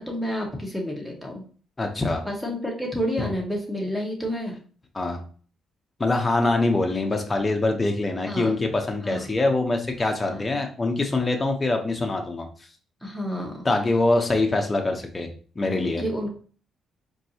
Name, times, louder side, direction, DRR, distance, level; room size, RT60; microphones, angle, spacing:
voice 1, 0.0-1.4 2.2-4.6 8.2-8.5 9.0-9.3 10.3-10.4 13.0-13.7 15.6-16.3, equal, ahead, 0 dB, 1.3 m, -30 dB
voice 2, 1.8-2.2 4.9-5.2 6.0-12.5 13.6-15.3 15.6-16.0, left 2 dB, 25° left, 3 dB, 0.8 m, -24 dB
4.4 x 2.7 x 2.8 m, 0.42 s
cardioid pair, 90°, 0 cm